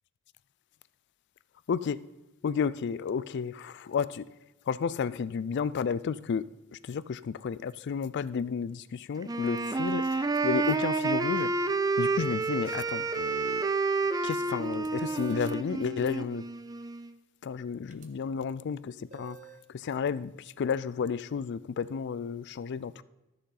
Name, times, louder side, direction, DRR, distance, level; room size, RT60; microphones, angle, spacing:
voice 1, 1.7-2.0 2.4-4.2 4.7-6.4 6.7-11.5 12.0-13.6 14.2-16.4 17.4-19.4 19.7-23.0, left 6 dB, 55° left, 0.3 m, -32 dB
Wind instrument woodwind instrument, 9.2-17.1, right 3 dB, 15° right, 0.3 m, -29 dB
sound 1, 14.7-15.6 17.9-18.1 19.1-19.7, right 9 dB, 35° right, 0.9 m, -51 dB
13.5 x 6.4 x 3.9 m
head